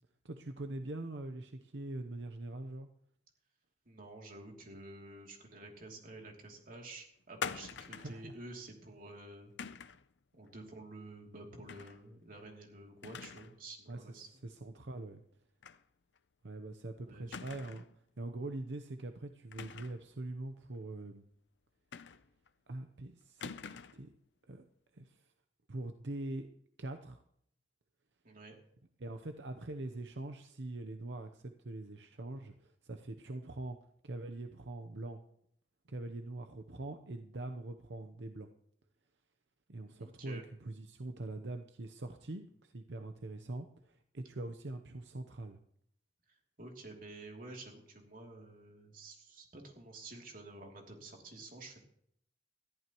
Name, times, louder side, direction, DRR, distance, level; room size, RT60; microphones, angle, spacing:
voice 1, 0.2-2.9 7.9-8.4 13.9-15.2 16.4-17.8 18.2-21.2 22.7-23.6 23.9-24.1 24.5-24.7 24.9-25.3 25.7-26.5 26.8-27.2 29.0-33.8 34.0-35.2 35.9-38.5 39.7-45.6, right 2 dB, 80° right, 6 dB, 0.8 m, -43 dB
voice 2, 3.8-9.5 10.3-14.3 17.1-17.4 28.2-28.6 40.0-40.4 46.6-51.8, right 2 dB, 50° right, 1 dB, 2.9 m, -50 dB
sound 1, 7.4-8.2 9.6-10.0 11.7-12.0 12.4-12.5 13.0-13.6 13.9-14.0 15.6-15.8 16.2-16.3 17.3-17.9 19.5-20.1 21.9-22.5 23.4-24.1, left 6 dB, 80° left, 0.6 m, -44 dB
20.5 x 14.0 x 3.1 m, 0.70 s
head